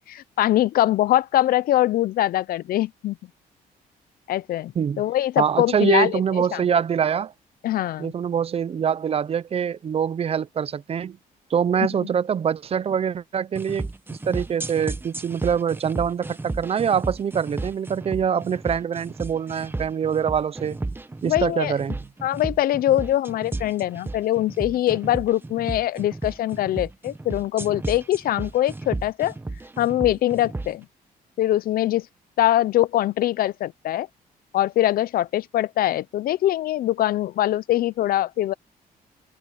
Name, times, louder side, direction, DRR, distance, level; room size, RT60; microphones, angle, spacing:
voice 1, 0.0-3.2 4.3-6.2 6.5-6.6 7.6-8.1 21.2-21.7 22.2-29.3 29.8-30.9 31.4-32.1 32.4-34.1 34.5-38.5, left 13 dB, 70° left, 0.6 m, -23 dB
voice 2, 5.4-7.3 8.0-11.2 11.5-20.8 21.2-22.0, right 8 dB, 40° right, 0.6 m, -24 dB
sound 1, 13.6-30.7, right 2 dB, 15° right, 1.1 m, -33 dB
cardioid pair, 110°, 16 cm